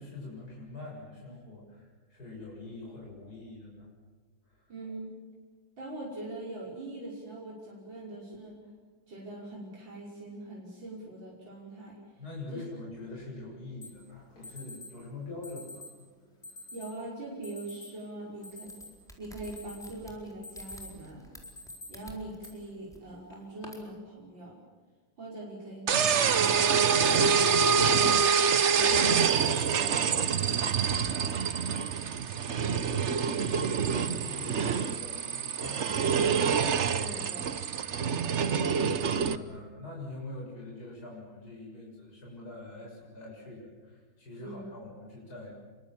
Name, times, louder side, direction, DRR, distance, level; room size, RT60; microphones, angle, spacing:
voice 1, 0.0-3.9 4.5-4.6 12.2-15.9 16.5-16.7 32.3-36.7 38.2-45.5, left 2 dB, 50° left, -3 dB, 7.4 m, -44 dB
voice 2, 4.7-5.1 5.8-8.7 9.1-12.1 12.5-12.6 16.7-18.9 19.2-21.3 21.9-24.6 25.2-28.0 28.7-31.2 37.0-37.6 44.4-44.6, right 2 dB, 75° right, -4 dB, 6.4 m, -42 dB
Alarm, 13.8-13.9 14.4-14.9 15.4-15.9 16.4-16.9 17.4-17.9 18.3-19.1 19.4-19.9 20.3-21.0 21.4-21.9 22.4-22.5 23.3-23.7, left 2 dB, 35° left, 5.1 m, -46 dB
sound 1, 18.5-22.5 22.8-23.0 23.7-23.9, equal, ahead, 4.3 m, -50 dB
sound 2, 25.9-39.4, right 6 dB, 45° right, 1.0 m, -26 dB
27.0 x 24.0 x 7.4 m, 1.5 s
omnidirectional pair, 2.1 m